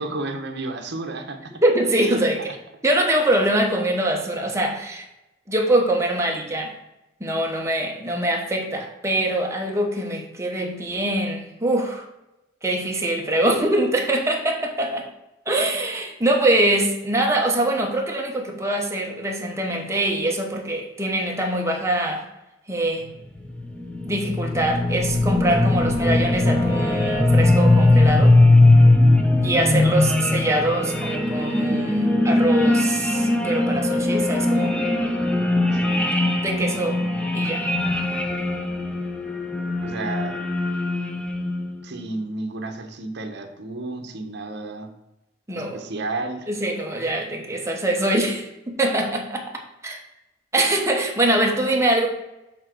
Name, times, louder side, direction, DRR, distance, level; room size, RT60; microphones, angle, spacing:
voice 1, 0.0-1.5 2.0-2.2 35.7-36.1 39.8-40.4 41.8-44.9 45.5-46.5, right 2 dB, 60° right, 5 dB, 1.1 m, -32 dB
voice 2, 1.6-2.4 2.8-5.0 5.5-6.7 7.2-12.0 12.6-15.1 15.5-22.2 22.7-23.1 24.0-28.4 29.4-34.7 36.4-37.0 37.3-37.6 45.5-45.8 46.5-49.5 49.8-50.0 50.5-52.1, right 1 dB, 15° right, 1 dB, 1.2 m, -23 dB
sound 1, 23.4-41.7, left 2 dB, 5° left, 0.7 m, -20 dB
7.3 x 3.9 x 6.2 m, 0.94 s
head